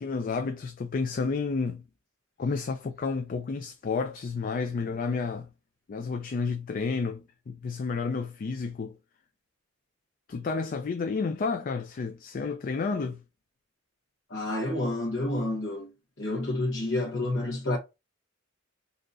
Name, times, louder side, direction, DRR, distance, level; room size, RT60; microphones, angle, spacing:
voice 1, 0.0-1.8 2.4-5.5 5.9-9.0 10.3-13.2, left 4 dB, 40° left, 0.4 m, -31 dB
voice 2, 14.3-15.9 16.2-17.8, left 1 dB, 60° left, 1.1 m, -29 dB
3.9 x 2.8 x 2.4 m
head